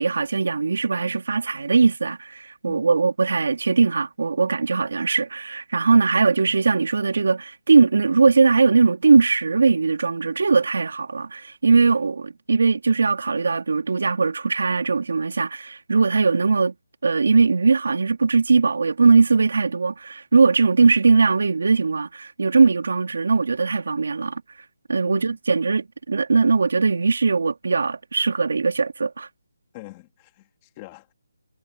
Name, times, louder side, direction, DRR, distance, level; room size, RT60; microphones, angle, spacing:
voice 1, 0.0-16.7 17.0-24.4 24.9-29.3, right 4 dB, 55° right, 4.0 m, -20 dB
voice 2, 2.6-3.0 25.0-25.4 29.7-31.1, left 20 dB, 15° left, 3.3 m, -44 dB
hypercardioid pair, 175°, 0 cm